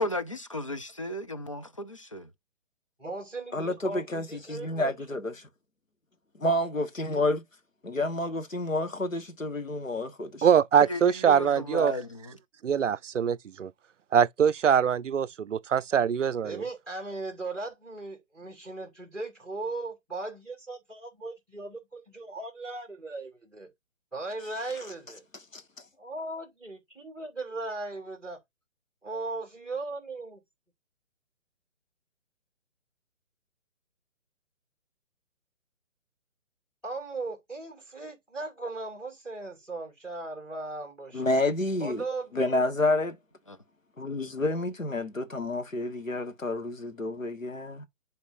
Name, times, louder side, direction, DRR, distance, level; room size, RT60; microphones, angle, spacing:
voice 1, 0.0-2.3 10.8-12.4 43.5-43.6, left 1 dB, 25° left, 0.4 m, -34 dB
voice 2, 3.0-4.9 16.4-23.7 24.1-25.2 26.0-28.4 29.0-30.4 36.8-41.3 41.8-42.7, right 2 dB, ahead, 2.3 m, -38 dB
voice 3, 3.5-5.5 6.4-7.4 7.8-10.5 25.5-25.6 41.1-42.0 42.3-43.2 44.0-47.9, left 2 dB, 80° left, 1.5 m, -29 dB
voice 4, 10.4-11.9 12.6-13.7 14.1-16.6, right 8 dB, 70° right, 0.5 m, -23 dB
10.5 x 4.2 x 2.6 m
figure-of-eight pair, 140°, 39 cm